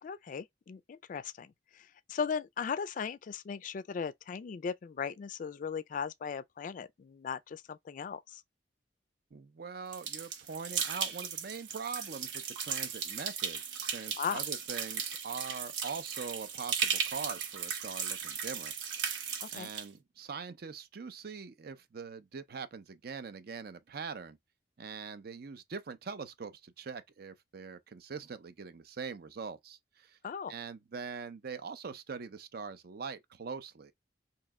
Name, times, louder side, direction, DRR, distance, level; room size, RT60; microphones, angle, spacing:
voice 1, 0.0-8.4 14.2-14.4 19.4-19.7 30.2-30.5, left 6 dB, 45° left, 0.3 m, -38 dB
voice 2, 9.3-19.2 19.5-24.4 24.8-30.2 30.5-33.9, right 5 dB, 55° right, 0.5 m, -43 dB
sound 1, 9.9-19.8, right 6 dB, 90° right, 0.8 m, -36 dB
3.1 x 2.9 x 3.5 m
head